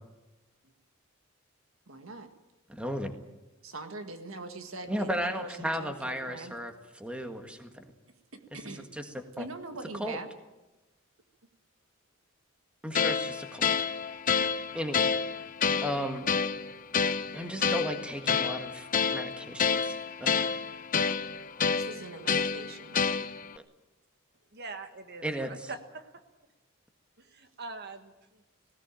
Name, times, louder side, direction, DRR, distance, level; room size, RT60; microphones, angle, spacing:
voice 1, 1.9-2.3 3.6-6.5 8.3-8.9 9.4-10.3 21.7-23.0, right 3 dB, 75° right, 7 dB, 1.8 m, -42 dB
voice 2, 2.7-3.1 4.9-7.8 8.9-9.5 10.0-10.2 12.8-13.7 14.7-15.0 15.8-16.3 17.3-20.4 25.2-25.7, equal, 5° right, 5 dB, 1.7 m, -35 dB
sound 1, 12.9-23.6, left 6 dB, 40° left, 0.8 m, -29 dB
voice 3, 24.5-26.2 27.2-28.4, right 3 dB, 50° right, 7 dB, 1.5 m, -43 dB
19.0 x 17.5 x 9.0 m, 1.1 s
head